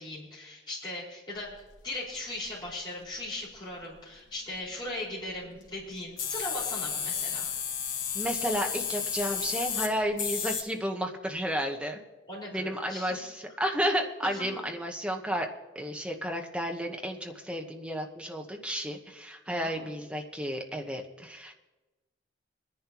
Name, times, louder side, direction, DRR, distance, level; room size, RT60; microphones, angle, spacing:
voice 1, 0.0-7.5 12.3-13.2 14.2-14.6 19.5-19.9, left 1 dB, 25° left, -6 dB, 4.9 m, -39 dB
sound 1, 1.5-1.7 2.5-2.7 5.7-5.8 6.0-10.6, left 7 dB, 90° left, 2.0 m, -32 dB
voice 2, 8.1-12.0 12.5-15.5 15.7-21.5, equal, 5° right, 2 dB, 1.1 m, -32 dB
23.0 x 10.5 x 3.0 m, 1.1 s
head